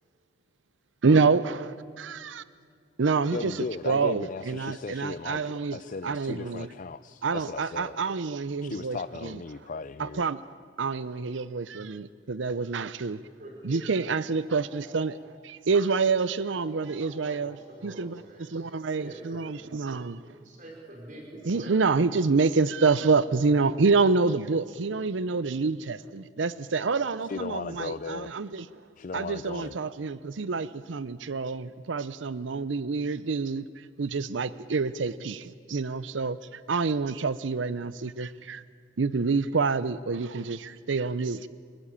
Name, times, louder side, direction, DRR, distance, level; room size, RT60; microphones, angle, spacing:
voice 1, 1.0-2.4 3.0-3.6 3.8-6.7 7.2-9.4 10.0-10.4 10.8-13.2 13.6-15.2 15.4-17.6 17.8-20.2 21.4-28.7 29.1-38.6 39.0-41.5, right 4 dB, 85° right, 16 dB, 0.6 m, -27 dB
voice 2, 3.3-8.0 8.6-10.2 27.2-28.3 29.0-29.8, left 4 dB, 45° left, 14 dB, 0.5 m, -37 dB
voice 3, 13.4-13.8 16.8-18.6 19.0-19.9 20.2-21.8, right 1 dB, 45° right, -1 dB, 5.4 m, -46 dB
sound 1, 14.4-15.7 16.6-18.1 18.8-20.0 20.7-21.9, right 1 dB, 20° right, 6.6 m, -58 dB
29.5 x 14.0 x 8.8 m, 2.2 s
head